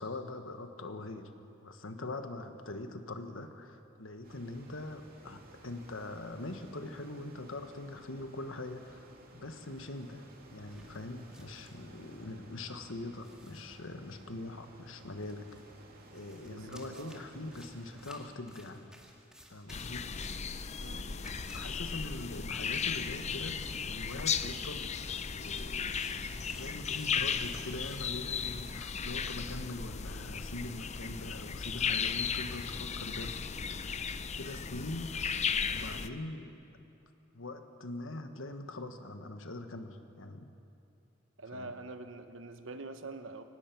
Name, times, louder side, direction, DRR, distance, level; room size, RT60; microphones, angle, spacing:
voice 1, 0.0-1.3 1.6-9.1 9.3-15.5 16.1-18.8 19.5-20.1 21.5-25.0 25.4-26.0 26.5-33.5 34.2-35.4 35.7-36.6 37.3-40.5 41.5-41.7, left 2 dB, 90° left, 7 dB, 1.4 m, -42 dB
sound 1, 4.2-18.1, right 1 dB, 50° right, 2.5 m, -56 dB
sound 2, 10.7-12.3 12.5-12.6 13.2-14.1 15.2-28.6, equal, 5° right, 2.3 m, -58 dB
voice 2, 16.4-17.2 20.8-21.3 41.4-43.4, right 3 dB, 70° right, 8 dB, 1.1 m, -45 dB
sound 3, 19.7-36.1, left 6 dB, 35° left, 0.6 m, -36 dB
23.5 x 18.5 x 6.0 m, 2.7 s
head